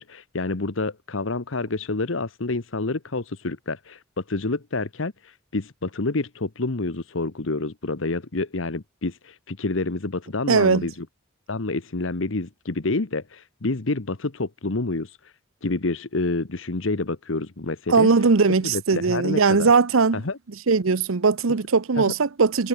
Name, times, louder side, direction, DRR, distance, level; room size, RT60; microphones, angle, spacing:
voice 1, 0.0-11.0 11.5-15.2 15.6-18.1 18.6-19.7 20.1-20.4 22.0-22.1, left 3 dB, 70° left, 1.2 m, -28 dB
voice 2, 10.5-10.9 17.9-20.2 20.7-22.7, right 4 dB, 90° right, 0.8 m, -19 dB
head